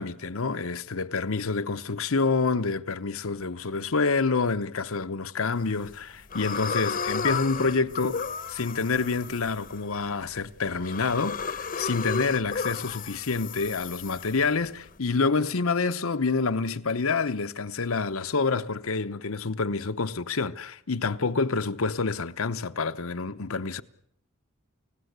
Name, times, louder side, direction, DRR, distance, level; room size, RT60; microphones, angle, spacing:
voice 1, 0.0-23.8, left 4 dB, 70° left, 1.0 m, -27 dB
sound 1, 5.5-5.9 6.3-14.9, left 5 dB, 40° left, 1.0 m, -34 dB
29.0 x 16.5 x 8.1 m
head